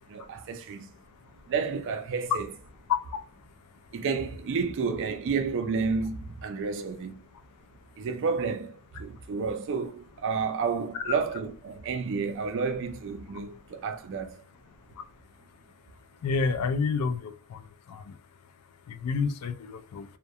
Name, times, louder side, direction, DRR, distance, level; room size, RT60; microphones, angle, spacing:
voice 1, 0.1-0.9 1.5-2.5 3.9-7.2 8.0-14.4, right 5 dB, 55° right, 0.4 m, -31 dB
voice 2, 16.2-17.3 19.0-20.0, left 4 dB, 90° left, 0.3 m, -28 dB
2.3 x 2.1 x 2.7 m
head